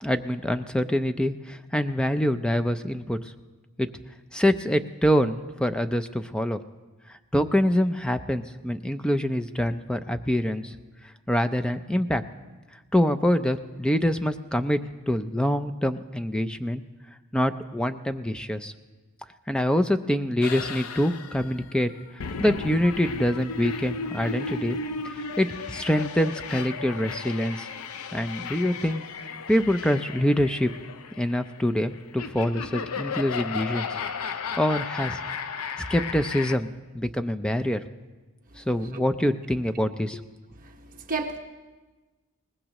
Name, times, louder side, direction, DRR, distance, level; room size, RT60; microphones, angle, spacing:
voice 1, 0.0-3.2 3.8-3.9 4.3-6.6 7.3-10.7 11.3-12.2 12.9-14.8 15.1-16.8 17.3-18.7 19.5-21.9 22.4-24.8 25.0-27.7 28.1-29.0 29.5-30.7 31.2-34.0 34.3-35.2 35.9-37.8 38.6-40.2, equal, 5° left, 10 dB, 0.4 m, -25 dB
sound 1, 20.4-36.6, left 5 dB, 85° left, 0.6 m, -35 dB
voice 2, 40.6-41.4, right 4 dB, 40° right, 2 dB, 1.2 m, -33 dB
22.5 x 19.5 x 3.0 m, 1.2 s
head